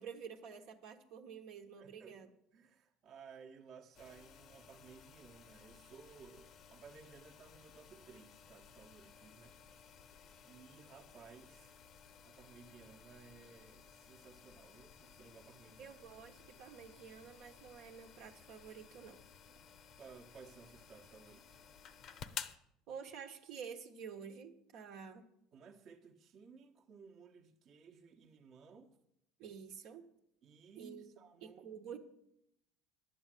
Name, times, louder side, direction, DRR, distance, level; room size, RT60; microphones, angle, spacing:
voice 1, 0.0-2.3 15.8-19.2 22.9-25.2 29.4-30.0 30.8-31.1 31.4-32.0, right 7 dB, 65° right, 1.3 m, -49 dB
voice 2, 1.8-9.6 10.4-11.8 12.2-16.0 19.5-19.7 20.0-21.6 25.5-29.0 30.4-31.8, right 5 dB, 45° right, 1.2 m, -58 dB
sound 1, 3.9-22.6, left 8 dB, 45° left, 0.7 m, -55 dB
11.5 x 8.6 x 7.6 m
cardioid pair, 130°, 0 cm